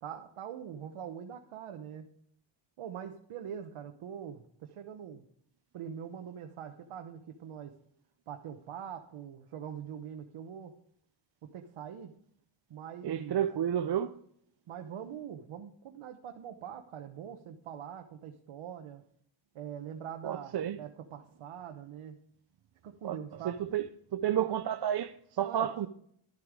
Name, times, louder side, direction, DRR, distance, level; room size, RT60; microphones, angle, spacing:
voice 1, 0.0-2.1 2.8-5.2 5.7-7.8 8.3-10.8 11.4-12.1 12.7-13.5 14.7-19.0 19.5-22.2 22.8-23.6 25.4-25.7, right 8 dB, 75° right, 1.1 m, -43 dB
voice 2, 13.0-14.1 20.2-20.8 23.0-23.2 23.4-23.9 24.1-25.9, right 10 dB, 50° right, 0.6 m, -31 dB
12.5 x 8.5 x 4.8 m
cardioid pair, 105°, 50 cm